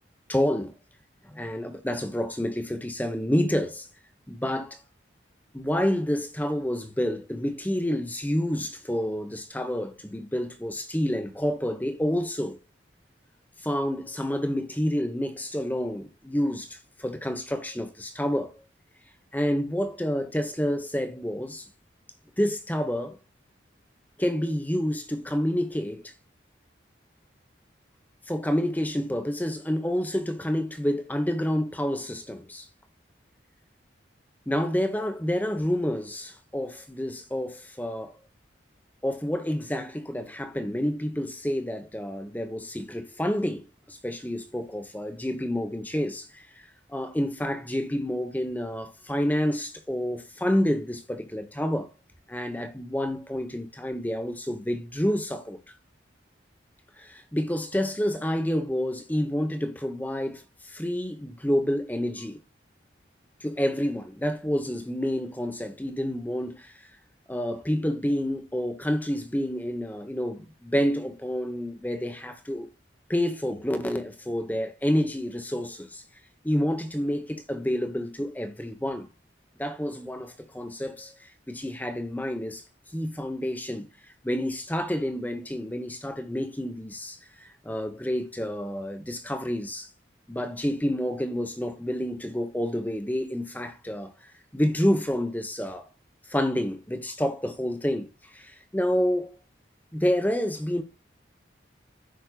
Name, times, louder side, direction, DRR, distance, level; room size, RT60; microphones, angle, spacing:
voice 1, 0.3-0.7 1.2-3.9 4.3-4.8 5.5-12.6 13.6-18.5 19.3-21.7 22.4-23.2 24.2-26.1 28.3-32.7 34.5-38.1 39.0-51.9 52.3-55.6 57.0-62.4 63.4-66.7 67.3-72.7 73.1-76.0 76.4-79.1 79.6-82.6 82.9-83.9 84.2-89.9 90.3-95.9 96.3-99.4 99.9-100.8, equal, 10° left, 1.0 m, -29 dB
15.5 x 5.4 x 2.4 m
head